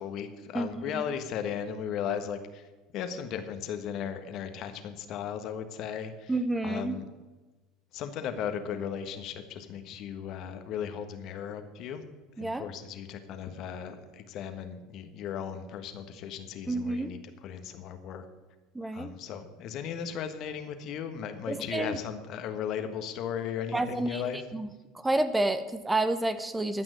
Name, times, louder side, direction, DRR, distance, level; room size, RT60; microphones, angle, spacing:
voice 1, 0.0-2.6 2.9-6.3 6.6-7.0 7.9-12.1 12.4-18.2 18.9-24.4, left 8 dB, 55° left, 8 dB, 1.4 m, -36 dB
voice 2, 0.5-1.0 6.3-7.0 12.4-12.7 16.7-17.1 18.7-19.1 21.5-22.0 23.7-24.2 24.5-24.7 24.9-26.8, right 2 dB, 10° right, 11 dB, 0.9 m, -29 dB
14.0 x 6.1 x 7.6 m, 1.2 s
hypercardioid pair, 80°, 0 cm